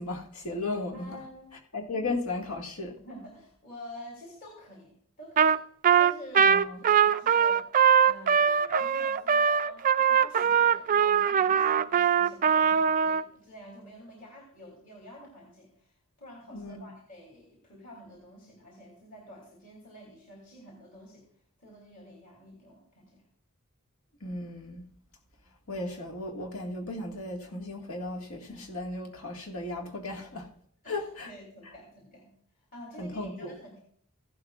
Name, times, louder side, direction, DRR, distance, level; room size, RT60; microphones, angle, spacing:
voice 1, 0.0-1.2 1.7-3.0 6.4-6.8 16.5-16.9 24.2-24.8 25.7-30.5 30.9-31.3 33.0-33.5, left 2 dB, 75° left, 1.9 m, -35 dB
voice 2, 0.9-1.5 3.0-5.6 6.0-21.3 21.6-23.3 30.8-33.8, equal, 40° left, 2.9 m, -48 dB
Trumpet, 5.4-5.6 5.8-13.2, right 7 dB, 40° right, 0.3 m, -22 dB
16.0 x 11.5 x 2.4 m
head